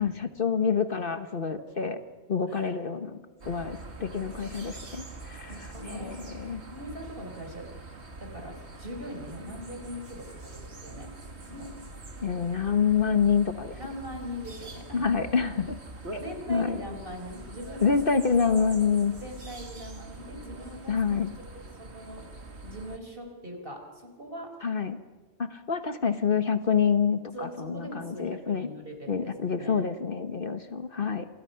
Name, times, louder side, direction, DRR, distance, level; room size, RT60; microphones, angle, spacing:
voice 1, 0.0-2.0 2.3-3.2 3.5-5.5 5.9-6.1 6.4-6.6 12.2-13.8 14.9-15.8 16.5-16.8 17.8-19.1 20.9-21.3 24.6-25.0 25.4-28.7 29.1-31.2, left 6 dB, 50° left, 8 dB, 1.4 m, -27 dB
sound 1, 3.4-23.0, right 2 dB, 70° right, 2.4 m, -44 dB
voice 2, 5.5-6.2 6.6-7.7 8.2-11.1 11.4-11.8 13.8-15.2 16.1-17.9 19.1-21.2 21.5-22.3 22.6-24.5 27.3-29.9, equal, 55° right, 4 dB, 4.6 m, -41 dB
27.5 x 27.0 x 5.8 m, 1.3 s
omnidirectional pair, 1.2 m